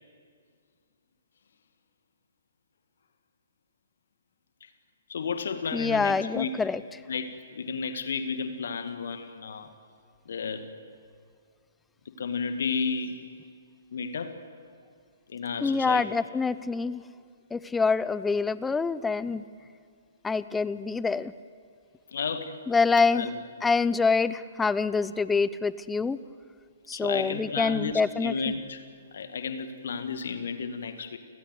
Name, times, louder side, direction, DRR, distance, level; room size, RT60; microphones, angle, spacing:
voice 1, 5.1-6.6 7.1-9.7 10.3-10.6 12.2-13.2 13.9-14.3 15.3-16.1 22.1-22.6 23.1-23.4 24.1-24.2 26.9-28.8 29.1-31.2, left 5 dB, 60° left, 9 dB, 2.0 m, -32 dB
voice 2, 5.7-6.8 15.6-17.0 17.5-19.4 20.2-21.3 22.7-23.3 23.6-26.2 26.9-28.3, left 4 dB, 10° left, 17 dB, 0.6 m, -26 dB
30.0 x 20.0 x 8.1 m, 2.1 s
figure-of-eight pair, 120°, 0 cm